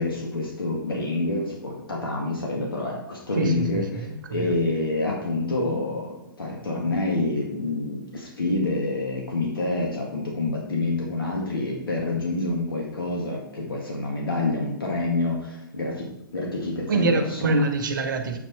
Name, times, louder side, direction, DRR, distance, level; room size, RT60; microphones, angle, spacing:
voice 1, 0.0-16.1 16.3-17.5, left 2 dB, 75° left, -1 dB, 1.9 m, -27 dB
voice 2, 3.4-4.6 16.9-18.4, right 3 dB, 60° right, 6 dB, 1.4 m, -25 dB
8.5 x 5.8 x 4.5 m, 0.80 s
figure-of-eight pair, 110°, 12 cm